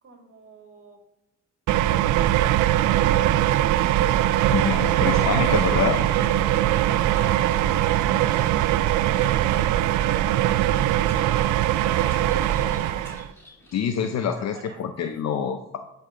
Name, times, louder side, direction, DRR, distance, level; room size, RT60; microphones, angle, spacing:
voice 1, 0.0-1.0 5.4-5.6 6.3-7.3 7.6-15.2, right 3 dB, 45° right, 2 dB, 2.4 m, -48 dB
sound 1, 1.7-13.3, right 13 dB, 80° right, 0.5 m, -21 dB
sound 2, 4.4-13.0, right 1 dB, 10° right, 3.0 m, -40 dB
voice 2, 4.5-6.0 13.7-15.8, left 8 dB, 60° left, 7 dB, 0.7 m, -26 dB
Bird, 5.5-14.3, equal, 10° left, 3.7 m, -50 dB
13.0 x 5.7 x 3.8 m, 0.92 s
cardioid pair, 90°, 30 cm